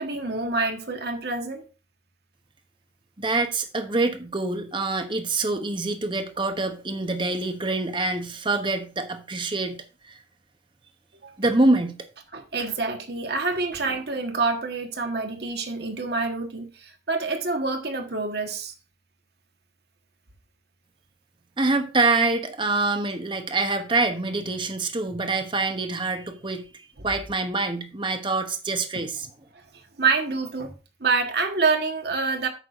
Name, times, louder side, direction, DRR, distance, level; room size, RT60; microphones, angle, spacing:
voice 1, 0.0-1.6 11.2-11.3 12.3-18.7 29.5-30.7 31.0-32.5, right 4 dB, 55° right, 1.5 m, -27 dB
voice 2, 3.2-10.2 11.4-12.0 21.6-29.3, right 3 dB, 25° right, 1.1 m, -25 dB
9.2 x 3.7 x 6.6 m
head